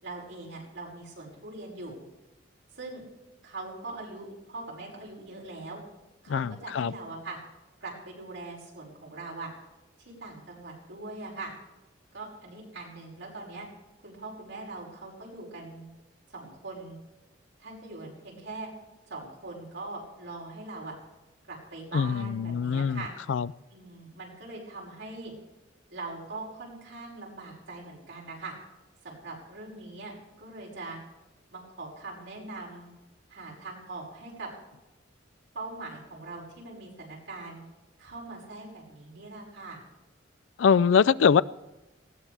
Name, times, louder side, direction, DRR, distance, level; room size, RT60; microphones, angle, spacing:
voice 1, 0.0-2.0 2.7-3.0 3.4-5.8 6.2-7.4 7.8-9.5 10.2-11.5 12.1-13.7 14.0-15.9 16.3-17.0 17.6-18.7 19.1-21.0 21.5-23.1 23.7-25.3 25.9-28.5 29.0-31.0 31.5-32.9 33.3-34.5 35.5-37.6 38.0-39.8, right 2 dB, 80° right, -3 dB, 5.5 m, -41 dB
voice 2, 6.3-6.9 21.9-23.0 23.3-23.5 40.6-41.4, left 6 dB, 75° left, 19 dB, 0.4 m, -23 dB
19.0 x 16.0 x 3.4 m, 1.0 s
head